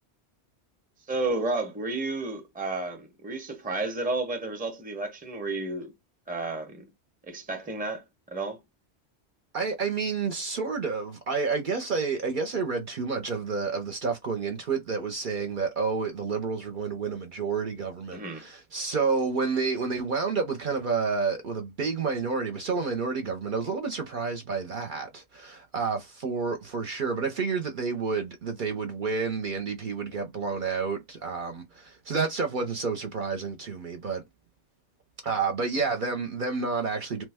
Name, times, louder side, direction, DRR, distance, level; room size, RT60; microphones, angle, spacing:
voice 1, 1.1-5.9 6.3-6.9 7.2-8.6 18.1-18.5, right 2 dB, 10° right, 0.6 m, -32 dB
voice 2, 9.5-34.2 35.2-37.2, right 4 dB, 55° right, 0.7 m, -30 dB
3.0 x 2.1 x 3.4 m
omnidirectional pair, 1.1 m